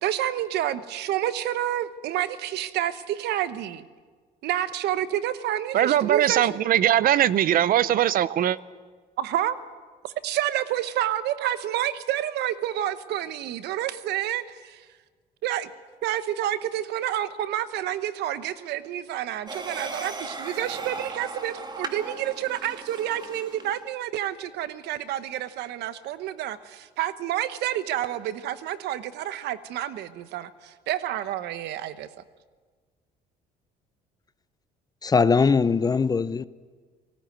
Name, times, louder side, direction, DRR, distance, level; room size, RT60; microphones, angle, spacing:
voice 1, 0.0-3.9 4.4-6.5 9.2-9.6 10.0-14.9 15.4-15.7 16.0-32.1, right 12 dB, 80° right, 1.0 m, -29 dB
voice 2, 5.7-8.6, right 11 dB, 60° right, 0.6 m, -21 dB
sound 1, 19.5-23.8, right 3 dB, 25° right, 2.2 m, -37 dB
voice 3, 35.0-36.4, left 5 dB, 20° left, 0.6 m, -21 dB
18.5 x 17.5 x 9.4 m
cardioid pair, 110°, 17 cm